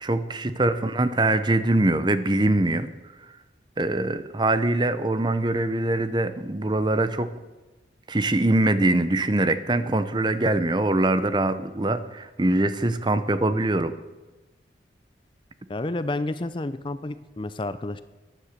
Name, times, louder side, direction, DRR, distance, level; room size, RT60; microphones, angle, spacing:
voice 1, 0.0-2.9 3.8-7.3 8.1-13.9, right 2 dB, 25° right, 12 dB, 0.7 m, -23 dB
voice 2, 15.7-18.0, left 2 dB, 25° left, 13 dB, 0.5 m, -30 dB
14.5 x 10.0 x 6.6 m, 1.1 s
head